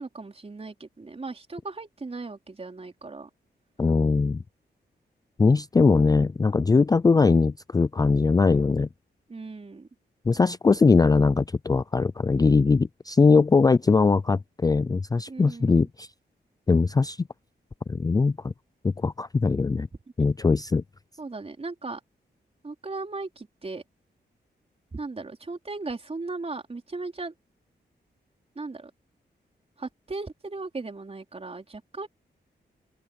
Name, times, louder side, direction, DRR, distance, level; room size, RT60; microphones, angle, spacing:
voice 1, 0.0-3.3 9.3-9.9 15.3-15.9 20.2-20.3 21.2-22.0 22.6-23.8 24.9-27.3 28.5-28.9 29.8-32.1, right 3 dB, 35° right, 4.5 m, -37 dB
voice 2, 3.8-4.4 5.4-8.9 10.3-16.1 16.7-17.2 17.9-18.5 18.8-19.9 20.2-20.8, left 4 dB, 20° left, 0.3 m, -21 dB
open air
cardioid pair, 90°, 18 cm